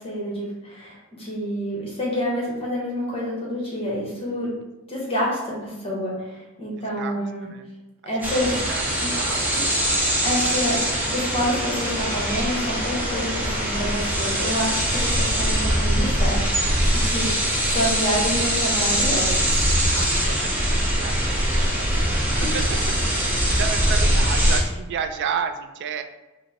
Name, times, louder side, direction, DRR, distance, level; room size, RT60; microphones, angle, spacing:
voice 1, 0.0-4.5 4.9-7.5 8.0-8.5 9.0-9.1 9.5-9.6 10.2-16.4 16.9-19.5 22.4-22.5, equal, 30° left, -5 dB, 1.0 m, -28 dB
voice 2, 7.0-7.7 8.7-9.7 17.7-17.8 19.9-26.0, right 7 dB, 55° right, 8 dB, 0.3 m, -32 dB
sound 1, 8.2-24.6, equal, 10° right, 0.7 m, -22 dB
5.1 x 2.0 x 2.9 m, 1.1 s
head